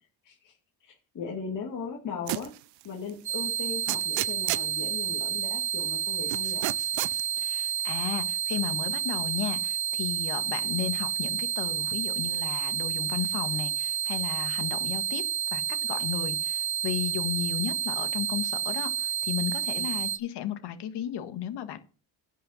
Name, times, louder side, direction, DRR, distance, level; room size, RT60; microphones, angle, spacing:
voice 1, 0.2-0.6 0.8-2.5 2.8-6.7 19.7-19.9, left 5 dB, 50° left, -2 dB, 2.3 m, -38 dB
sound 1, 2.3-2.6 3.1-3.2 3.9-4.7 6.3-7.2, right 18 dB, 85° right, 0.6 m, -31 dB
sound 2, 3.3-20.2, right 9 dB, 45° right, 1.4 m, -30 dB
voice 2, 7.4-15.2 15.5-21.8, left 10 dB, 75° left, 9 dB, 1.7 m, -34 dB
11.0 x 5.6 x 7.0 m, 0.37 s
cardioid pair, 135°, 41 cm